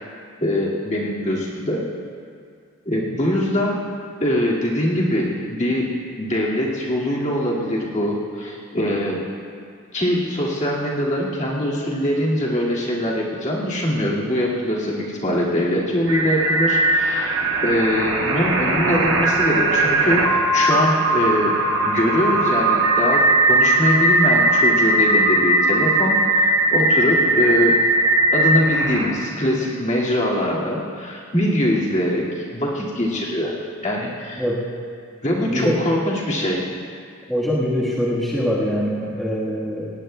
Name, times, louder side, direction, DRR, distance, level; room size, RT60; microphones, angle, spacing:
voice 1, 0.4-1.8 2.9-3.8 4.2-5.9 6.2-9.2 9.9-21.6 21.8-27.7 28.3-33.6 33.8-34.4 35.2-36.6, equal, 35° left, -5 dB, 2.0 m, -22 dB
sound 1, 16.1-29.1, right 2 dB, 55° right, 1.5 m, -19 dB
voice 2, 37.3-39.9, equal, ahead, -8 dB, 1.3 m, -23 dB
18.5 x 18.0 x 2.2 m, 2.3 s
head